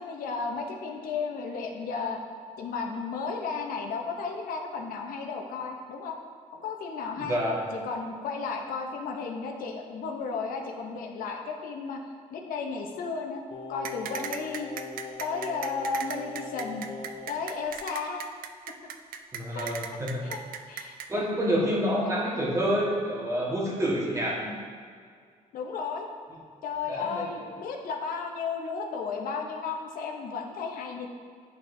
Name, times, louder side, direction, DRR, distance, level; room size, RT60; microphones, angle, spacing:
voice 1, 0.0-2.2 2.6-6.2 6.5-7.4 7.7-12.0 12.3-13.4 13.7-14.7 15.2-16.9 17.3-18.2 19.5-19.7 20.2-20.4 20.7-21.3 22.0-22.1 24.4-24.6 25.5-26.1 26.6-31.1, left 5 dB, 80° left, 2 dB, 0.7 m, -34 dB
voice 2, 7.2-7.7 19.3-20.2 21.1-24.5 26.9-27.3, equal, 20° right, -4 dB, 1.4 m, -28 dB
Singing, 13.5-17.4 17.7-17.8, left 4 dB, 35° left, 0.5 m, -41 dB
sound 1, 13.8-21.1, right 8 dB, 80° right, 0.4 m, -37 dB
8.7 x 4.1 x 2.6 m, 2.1 s
cardioid pair, 110°, 15 cm